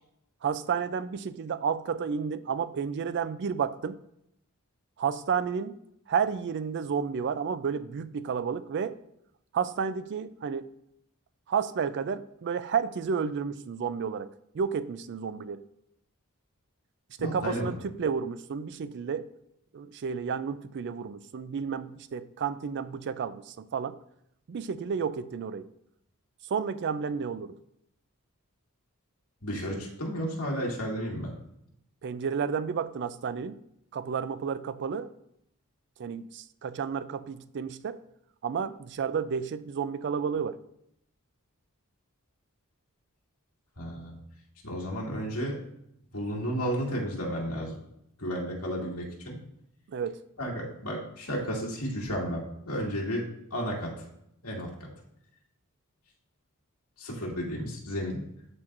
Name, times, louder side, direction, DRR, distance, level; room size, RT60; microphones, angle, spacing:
voice 1, 0.4-4.0 5.0-5.8 6.1-9.0 9.5-10.7 11.5-15.6 17.2-19.3 19.7-24.0 24.5-25.7 26.4-27.5 32.0-33.6 33.9-35.1 36.0-38.0 38.4-40.6 49.9-50.2, right 6 dB, 50° right, 14 dB, 0.4 m, -31 dB
voice 2, 17.2-17.7 29.4-31.3 43.8-44.1 44.6-45.6 46.1-47.8 48.2-49.4 50.4-53.2 53.5-53.9 54.4-54.9 57.0-58.2, equal, 85° left, -2 dB, 2.3 m, -32 dB
13.0 x 4.4 x 2.5 m, 0.76 s
head